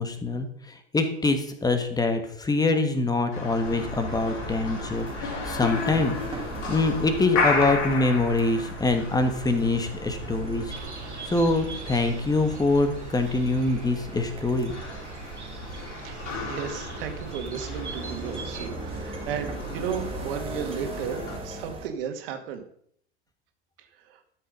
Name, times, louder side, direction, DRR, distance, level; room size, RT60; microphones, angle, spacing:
voice 1, 0.0-6.1 6.7-10.7 11.2-14.7, left 2 dB, 10° left, 7 dB, 1.7 m, -24 dB
sound 1, 3.3-21.4, left 3 dB, 55° left, 4.1 m, -35 dB
sound 2, 3.6-21.9, right 3 dB, 15° right, 2.1 m, -38 dB
Bird, 10.7-18.7, right 5 dB, 85° right, 2.0 m, -44 dB
voice 2, 16.0-22.7 23.8-24.2, right 8 dB, 55° right, 6 dB, 2.1 m, -34 dB
13.0 x 6.6 x 5.4 m, 0.65 s
figure-of-eight pair, 90°, 34 cm